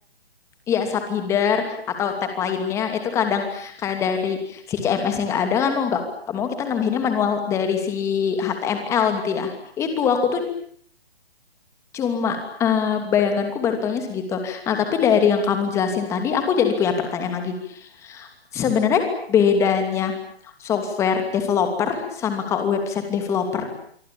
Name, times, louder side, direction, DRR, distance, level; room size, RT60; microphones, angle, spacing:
voice 1, 0.7-9.5 9.8-10.2 11.9-18.3 18.5-19.0 19.3-20.1 20.6-23.8, left 7 dB, 10° left, 6 dB, 2.8 m, -23 dB
26.5 x 24.5 x 8.6 m, 0.62 s
hypercardioid pair, 170°, 32 cm